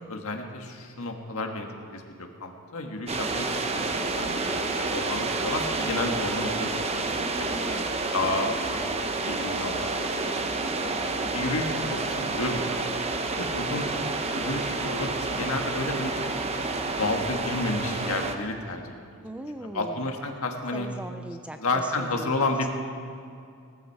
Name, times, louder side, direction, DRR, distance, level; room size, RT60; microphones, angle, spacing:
voice 1, 0.0-1.7 1.9-3.5 3.9-7.7 8.1-10.3 10.9-13.9 14.3-16.1 16.9-18.8 19.6-20.9 21.6-22.8, left 2 dB, 70° left, 3 dB, 1.6 m, -31 dB
sound 1, 3.1-18.4, right 3 dB, 30° right, 0.8 m, -29 dB
voice 2, 7.6-8.1 8.4-8.6 14.3-14.6 19.2-20.1 20.7-22.5, right 1 dB, 5° right, 7 dB, 0.4 m, -40 dB
18.0 x 13.5 x 4.7 m, 2.4 s
head